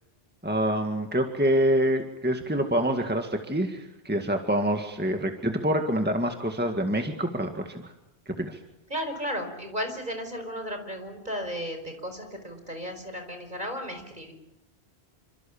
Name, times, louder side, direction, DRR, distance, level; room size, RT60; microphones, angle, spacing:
voice 1, 0.4-7.9 8.3-8.6, right 1 dB, 10° right, 4 dB, 1.9 m, -26 dB
voice 2, 8.9-14.3, equal, 45° right, 6 dB, 5.1 m, -34 dB
28.5 x 26.0 x 7.2 m, 0.89 s
omnidirectional pair, 1.1 m